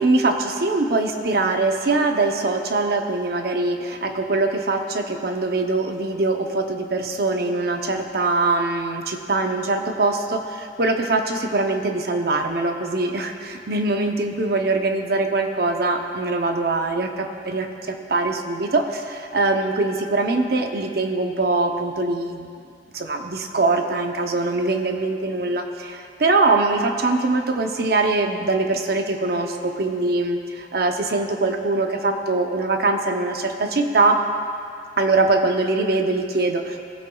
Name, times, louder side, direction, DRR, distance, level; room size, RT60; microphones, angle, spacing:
voice 1, 0.0-22.5 22.9-34.2 35.0-36.8, right 3 dB, 60° right, 4 dB, 0.7 m, -22 dB
17.0 x 7.8 x 2.3 m, 2.4 s
head